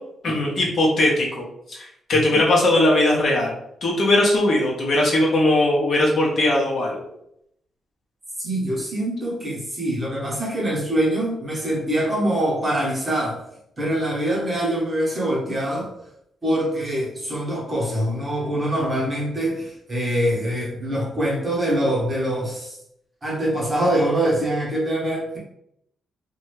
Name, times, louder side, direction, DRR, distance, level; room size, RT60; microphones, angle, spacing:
voice 1, 0.2-3.5 3.8-7.0, left 1 dB, 45° left, -3 dB, 0.7 m, -19 dB
voice 2, 8.4-13.4 13.8-15.9 16.4-22.8 23.2-25.4, right 1 dB, 20° right, -5 dB, 0.9 m, -24 dB
2.7 x 2.2 x 3.1 m, 0.75 s
wide cardioid pair, 170°, 0 cm